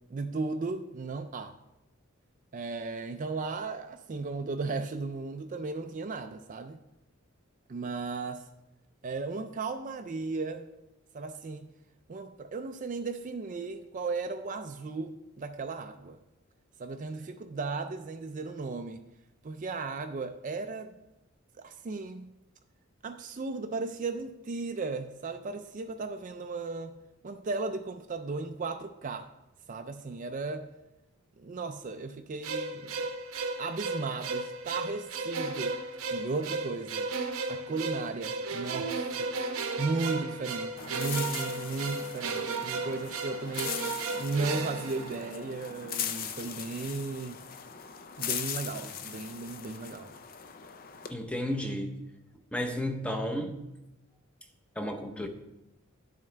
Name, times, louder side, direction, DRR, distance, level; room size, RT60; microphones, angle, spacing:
voice 1, 0.1-1.5 2.5-6.8 7.7-8.5 9.0-10.7 11.1-11.7 12.1-16.2 16.8-19.0 19.4-20.9 21.6-22.4 23.0-29.3 29.7-30.7 31.4-33.1 33.6-35.8 36.1-37.1 37.5-39.3 39.8-43.8 44.2-47.4 48.2-50.1, right 3 dB, 35° right, 0.4 m, -35 dB
sound 1, 32.4-45.7, right 3 dB, 75° right, 0.8 m, -35 dB
sound 2, 40.8-51.1, left 8 dB, 40° left, 0.5 m, -39 dB
voice 2, 51.1-51.9 52.5-53.6 54.8-55.3, left 1 dB, 5° left, 0.7 m, -32 dB
11.0 x 7.1 x 3.4 m
head